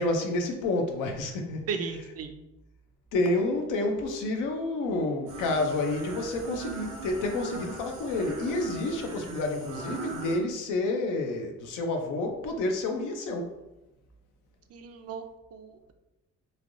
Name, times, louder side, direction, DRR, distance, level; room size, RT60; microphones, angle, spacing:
voice 1, 0.0-1.6 3.1-13.6, left 2 dB, 85° left, 3 dB, 0.6 m, -29 dB
voice 2, 1.7-2.4 14.7-15.2 15.5-15.9, right 5 dB, 55° right, 7 dB, 0.4 m, -36 dB
sound 1, 5.3-10.4, right 3 dB, 85° right, 0.8 m, -39 dB
3.2 x 2.6 x 2.6 m, 0.97 s
cardioid pair, 90°, 30 cm